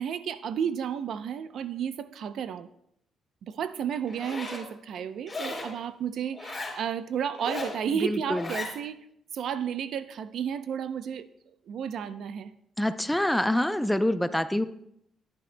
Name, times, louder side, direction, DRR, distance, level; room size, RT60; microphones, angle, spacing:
voice 1, 0.0-2.7 3.4-9.0 9.3-11.3 11.7-12.5, right 8 dB, 70° right, 12 dB, 0.6 m, -32 dB
Zipper (clothing), 4.1-4.6 5.3-5.7 6.3-6.8 7.3-7.8 8.3-8.7, left 3 dB, 25° left, 3.3 m, -36 dB
voice 2, 7.9-8.5 12.8-14.7, left 1 dB, 5° left, 11 dB, 0.5 m, -26 dB
14.0 x 11.0 x 2.2 m, 0.73 s
cardioid pair, 90°, 0 cm